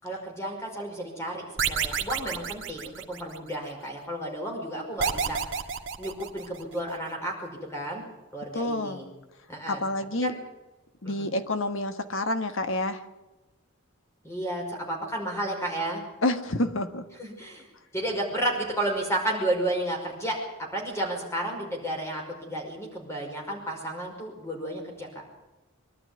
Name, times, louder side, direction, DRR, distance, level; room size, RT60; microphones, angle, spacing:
voice 1, 0.0-5.4 6.0-8.0 8.3-9.1 9.5-9.8 10.2-10.4 11.0-11.3 14.2-16.0 17.2-25.2, right 1 dB, 15° left, 0 dB, 5.3 m, -32 dB
sound 1, 1.6-3.5 5.0-6.8, right 6 dB, 60° right, 1.7 m, -30 dB
voice 2, 8.5-9.0 9.7-10.3 11.0-13.0 16.2-17.0, left 1 dB, 65° left, 8 dB, 1.5 m, -28 dB
24.0 x 12.0 x 9.7 m, 1.1 s
head